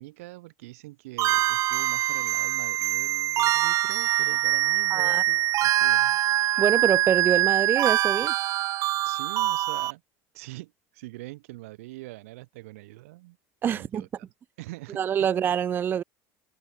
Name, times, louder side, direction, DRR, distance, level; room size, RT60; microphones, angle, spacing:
voice 1, 0.0-6.2 9.0-10.0 10.3-13.4 13.6-14.3 14.6-15.3, right 20 dB, 90° right, 6.6 m, -43 dB
sound 1, 1.2-9.9, right 15 dB, 50° right, 0.8 m, -24 dB
voice 2, 4.9-5.2 6.6-8.3 13.6-14.0 15.0-16.0, right 8 dB, 30° right, 0.5 m, -25 dB
supercardioid pair, 130°, 7 cm